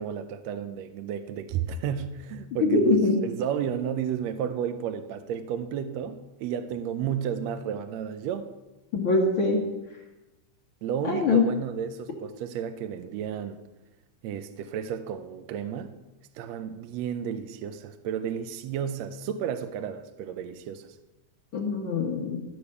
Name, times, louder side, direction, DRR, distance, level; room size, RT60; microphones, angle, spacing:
voice 1, 0.0-8.5 10.8-13.6 14.2-15.9 16.3-20.9, right 8 dB, 80° right, 10 dB, 1.6 m, -32 dB
voice 2, 2.7-3.2 8.9-9.6 11.0-11.4 21.5-22.4, left 3 dB, 55° left, -1 dB, 1.6 m, -23 dB
14.0 x 5.0 x 6.9 m, 1.0 s
omnidirectional pair, 3.6 m